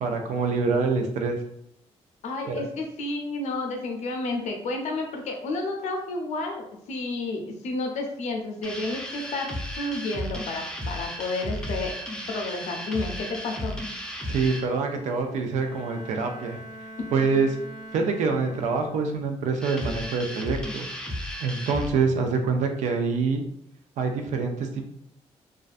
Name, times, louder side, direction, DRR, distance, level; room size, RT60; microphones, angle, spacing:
voice 1, 0.0-1.4 2.5-2.7 14.3-16.6 17.1-17.5 17.9-20.9 21.4-23.4 24.0-24.9, right 4 dB, 85° right, 4 dB, 0.4 m, -25 dB
voice 2, 2.2-12.0 12.3-13.8, left 2 dB, 80° left, 2 dB, 0.5 m, -31 dB
sound 1, 8.6-14.7 19.6-21.9, equal, 5° left, 0.4 m, -34 dB
Bowed string instrument, 15.1-19.2, right 1 dB, 40° right, 0.6 m, -43 dB
2.5 x 2.2 x 2.4 m, 0.73 s
cardioid pair, 95°, 12 cm